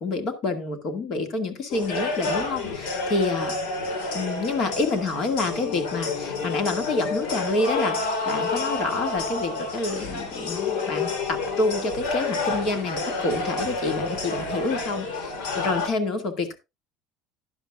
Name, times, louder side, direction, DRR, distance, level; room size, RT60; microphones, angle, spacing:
voice 1, 0.0-3.6 4.1-16.5, left 3 dB, 40° left, 7 dB, 2.0 m, -28 dB
sound 1, 1.7-15.9, left 3 dB, 80° left, 3.5 m, -29 dB
12.5 x 10.5 x 2.4 m, 0.24 s
cardioid pair, 170°, 0 cm